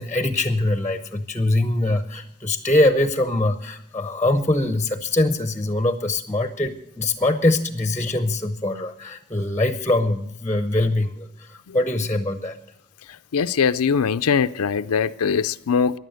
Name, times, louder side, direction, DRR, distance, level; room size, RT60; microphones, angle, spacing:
voice 1, 0.0-12.6, left 1 dB, 10° left, 9 dB, 0.6 m, -23 dB
voice 2, 13.3-16.0, left 6 dB, 85° left, 12 dB, 0.5 m, -21 dB
16.0 x 11.0 x 6.4 m, 0.81 s
head